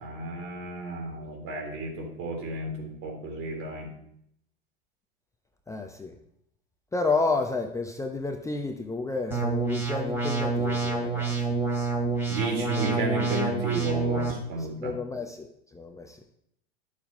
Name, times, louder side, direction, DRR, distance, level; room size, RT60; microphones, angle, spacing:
voice 1, 0.0-3.9 12.3-15.0, right 2 dB, 50° right, 1 dB, 3.7 m, -32 dB
voice 2, 5.7-6.1 6.9-11.3 14.8-15.5 15.7-16.2, left 3 dB, 10° left, 5 dB, 0.8 m, -30 dB
sound 1, 9.3-14.3, right 3 dB, 5° right, 3.0 m, -27 dB
11.5 x 7.0 x 5.0 m, 0.73 s
hypercardioid pair, 90°, 30 cm